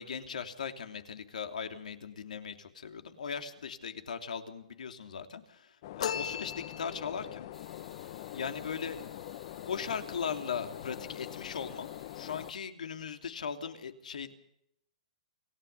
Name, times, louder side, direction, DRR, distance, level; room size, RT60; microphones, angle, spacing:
voice 1, 0.0-7.5 8.3-9.0 9.7-11.9 12.1-14.3, left 6 dB, 85° left, 7 dB, 3.1 m, -38 dB
sound 1, 5.8-12.5, left 14 dB, 40° left, 0.8 m, -44 dB
sound 2, 6.0-7.3, left 8 dB, 60° left, 1.6 m, -36 dB
sound 3, 7.5-12.6, left 2 dB, 5° left, 2.3 m, -58 dB
28.0 x 16.0 x 6.9 m, 0.76 s
hypercardioid pair, 165°, 4 cm